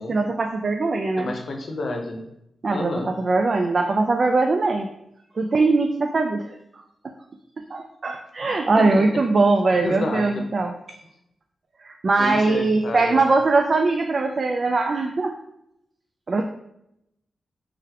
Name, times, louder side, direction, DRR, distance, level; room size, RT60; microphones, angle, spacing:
voice 1, 0.1-1.3 2.6-2.9 3.2-4.9 5.4-6.4 7.7-10.7 11.8-15.3 16.3-16.4, right 3 dB, 55° right, 4 dB, 0.3 m, -21 dB
voice 2, 1.2-2.3 2.7-3.1 8.8-9.2 9.8-10.4 12.2-13.2, left 2 dB, 65° left, 4 dB, 0.7 m, -30 dB
3.3 x 3.3 x 3.4 m, 0.81 s
supercardioid pair, 40°, 0 cm